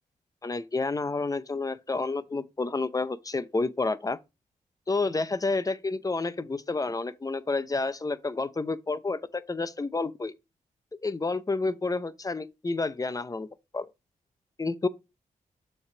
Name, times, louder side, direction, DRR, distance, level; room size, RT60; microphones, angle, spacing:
voice 1, 0.4-4.2 4.9-10.3 11.0-13.5 13.7-13.9 14.6-14.9, left 3 dB, 25° left, 0.7 m, -30 dB
7.0 x 3.4 x 5.9 m
cardioid pair, 50°, 14 cm